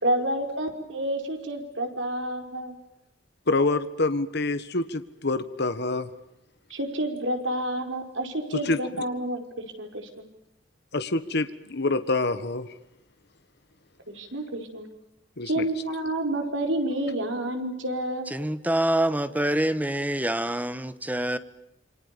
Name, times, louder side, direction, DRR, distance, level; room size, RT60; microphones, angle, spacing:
voice 1, 0.0-2.7 6.7-9.4 9.8-10.3 14.1-14.9 15.5-18.3, right 1 dB, 75° right, 5 dB, 5.0 m, -29 dB
voice 2, 3.5-6.1 8.6-8.8 10.9-12.7 15.4-15.6, left 2 dB, 60° left, 11 dB, 1.5 m, -26 dB
voice 3, 18.3-21.4, right 1 dB, 10° right, 13 dB, 1.2 m, -26 dB
28.0 x 25.5 x 7.0 m, 0.86 s
head